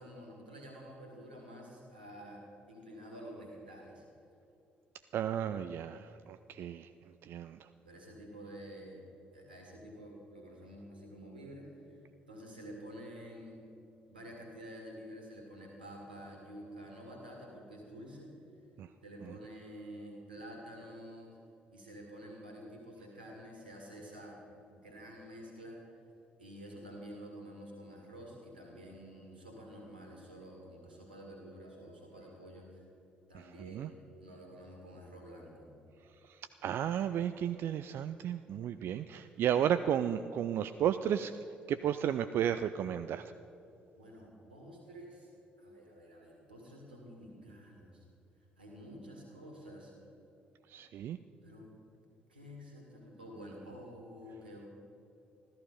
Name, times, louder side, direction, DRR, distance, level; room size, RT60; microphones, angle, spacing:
voice 1, 0.0-4.0 7.8-9.0 9.3-12.0 12.3-13.6 14.1-18.4 19.0-21.4 21.7-24.4 24.7-25.8 26.4-32.8 33.3-35.7 43.9-45.3 45.6-48.0 48.6-49.9 51.4-51.7 52.3-54.7, equal, 85° right, 0 dB, 2.1 m, -49 dB
voice 2, 5.1-6.9 7.2-7.6 18.8-18.9 33.6-33.9 36.6-41.3 41.7-43.3 50.7-51.2, right 9 dB, 50° right, 10 dB, 0.4 m, -33 dB
14.0 x 13.5 x 5.2 m, 2.9 s
figure-of-eight pair, 45°, 5 cm